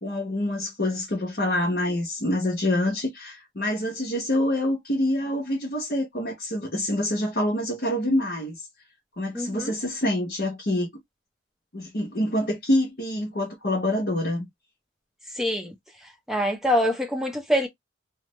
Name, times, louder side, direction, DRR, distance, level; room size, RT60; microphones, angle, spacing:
voice 1, 0.0-8.7 9.2-10.9 11.7-14.5, left 1 dB, 50° left, 0.9 m, -26 dB
voice 2, 9.3-9.7 15.3-15.7 16.0-17.7, equal, ahead, 0.6 m, -25 dB
3.3 x 2.0 x 3.1 m
head